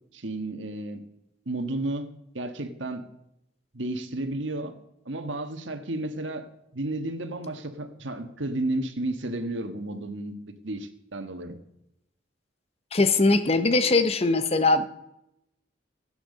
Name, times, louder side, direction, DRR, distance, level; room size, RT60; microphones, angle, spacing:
voice 1, 0.1-1.0 1.4-2.1 2.3-3.0 3.7-4.7 5.0-6.5 6.7-10.4 10.6-11.6, right 2 dB, 80° right, 7 dB, 1.5 m, -32 dB
voice 2, 12.9-14.9, left 3 dB, 30° left, 10 dB, 0.8 m, -21 dB
16.0 x 9.2 x 6.6 m, 0.84 s
head